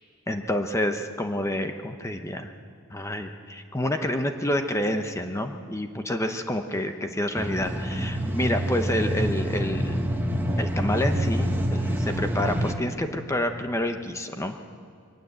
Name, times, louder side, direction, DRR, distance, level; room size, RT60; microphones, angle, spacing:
voice 1, 0.3-2.5 2.9-10.1 10.6-14.6, left 1 dB, 15° left, 6 dB, 0.9 m, -28 dB
sound 1, 7.3-12.7, equal, 10° right, 1.7 m, -27 dB
23.0 x 19.0 x 8.1 m, 2.4 s
head